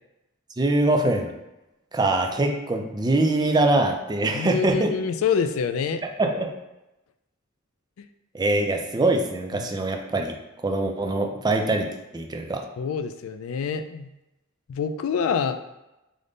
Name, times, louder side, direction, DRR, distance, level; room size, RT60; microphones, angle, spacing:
voice 1, 0.6-1.3 1.9-4.9 6.2-6.5 8.3-10.3 10.6-11.9 12.1-12.6, right 2 dB, 20° right, 3 dB, 0.4 m, -23 dB
voice 2, 4.3-6.0 8.0-8.1 9.5-9.7 12.8-14.1 14.7-15.6, left 6 dB, 85° left, 9 dB, 0.3 m, -26 dB
5.0 x 2.1 x 3.9 m, 0.94 s
head